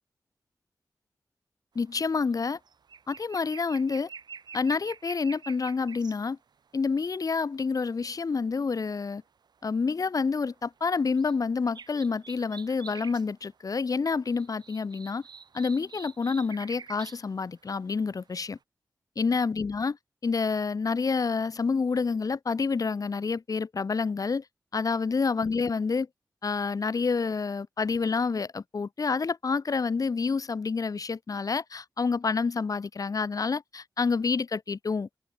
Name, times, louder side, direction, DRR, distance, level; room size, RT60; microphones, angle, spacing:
voice 1, 1.7-2.6 3.1-4.1 4.5-6.4 6.7-9.2 9.6-15.2 15.5-18.6 19.2-20.0 20.2-24.4 24.7-26.1 26.4-35.1, left 4 dB, 55° left, 1.2 m, -28 dB
sound 1, 1.8-2.0 2.3-6.2 7.0-7.7 9.7-9.9 10.3-11.4 11.7-13.3 13.7-13.8 14.0-17.2 17.7-18.3 18.6-18.7, right 6 dB, 80° right, 1.4 m, -47 dB
open air
wide cardioid pair, 75°, 7 cm